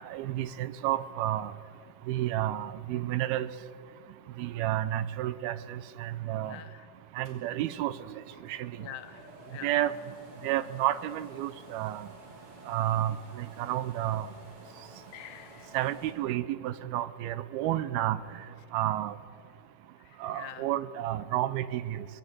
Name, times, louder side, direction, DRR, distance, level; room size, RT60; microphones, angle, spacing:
voice 1, 0.0-1.5 2.1-3.5 4.4-6.6 7.2-8.0 8.5-8.7 9.6-9.9 10.4-12.1 12.7-14.3 15.7-18.2 18.7-19.2 20.2-22.1, right 13 dB, 80° right, 15 dB, 2.6 m, -31 dB
voice 2, 6.3-6.9 8.8-9.7 15.1-15.7 20.1-20.7, left 12 dB, 85° left, 10 dB, 3.1 m, -46 dB
sound 1, 7.2-16.1, right 1 dB, 35° right, 5.1 m, -52 dB
24.5 x 20.5 x 9.5 m, 2.4 s
omnidirectional pair, 4.5 m